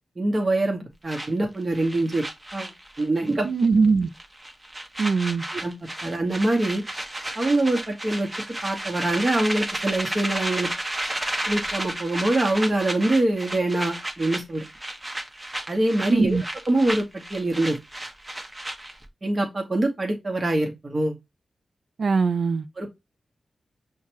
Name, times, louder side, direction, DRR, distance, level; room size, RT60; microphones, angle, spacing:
voice 1, 0.2-2.2 2.5-2.7 3.0-3.5 5.6-5.7 6.0-6.8 7.4-8.3 8.6-10.7 11.5-14.7 15.7-16.4 16.7-17.8 19.2-21.1 22.8-22.9, right 2 dB, 40° right, 1.1 m, -24 dB
sound 1, 1.1-3.3 3.6-3.9 4.2-19.1, right 1 dB, 25° right, 0.8 m, -33 dB
voice 2, 3.4-4.1 5.0-5.4 16.1-16.4 22.0-22.7, right 4 dB, 70° right, 0.3 m, -21 dB
5.6 x 2.3 x 2.9 m
cardioid pair, 45°, 0 cm